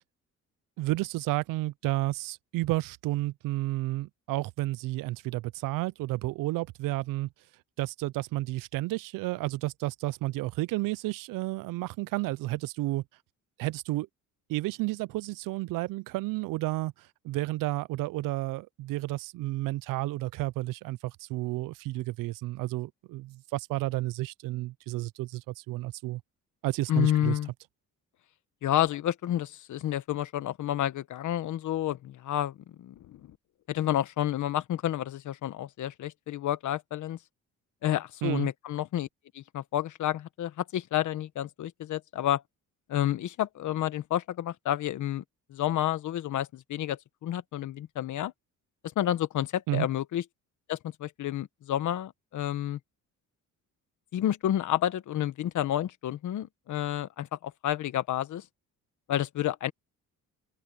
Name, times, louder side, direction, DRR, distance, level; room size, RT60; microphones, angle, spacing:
voice 1, 0.8-7.3 7.8-13.0 13.6-14.1 14.5-26.2 26.6-27.4 38.2-38.5 49.7-49.9, right 18 dB, 90° right, 0.5 m, -31 dB
voice 2, 26.9-27.5 28.6-33.4 33.7-37.2 37.8-39.1 39.3-42.4 42.9-45.2 45.5-48.3 49.0-50.2 50.7-52.8 54.1-58.4 59.1-59.7, left 12 dB, 65° left, 1.4 m, -30 dB
open air
cardioid pair, 140°, 32 cm